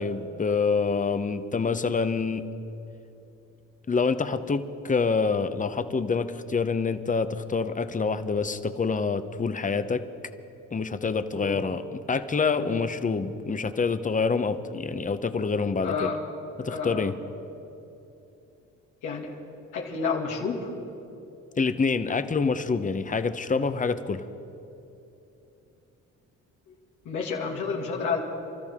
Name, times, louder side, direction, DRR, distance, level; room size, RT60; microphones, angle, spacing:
voice 1, 0.0-2.5 3.9-10.0 10.7-16.1 16.6-17.1 21.6-24.2, left 4 dB, 25° left, 11 dB, 0.8 m, -26 dB
voice 2, 15.8-16.2 16.6-17.1 19.0-19.3 19.7-20.7 27.0-28.2, left 5 dB, 90° left, -1 dB, 2.4 m, -30 dB
30.0 x 13.0 x 3.7 m, 2.9 s
cardioid pair, 90°, 30 cm